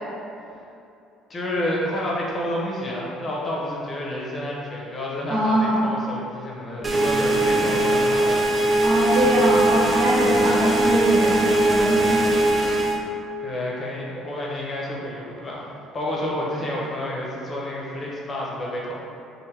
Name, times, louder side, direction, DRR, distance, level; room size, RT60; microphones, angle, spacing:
voice 1, 1.3-8.5 13.4-18.9, left 1 dB, 30° left, -4 dB, 0.8 m, -29 dB
voice 2, 5.3-5.8 8.8-12.2, right 1 dB, 70° right, -8 dB, 1.2 m, -22 dB
sound 1, 6.8-13.0, right 1 dB, 25° right, 0.4 m, -20 dB
3.4 x 2.6 x 3.1 m, 2.7 s
supercardioid pair, 90°, 0 cm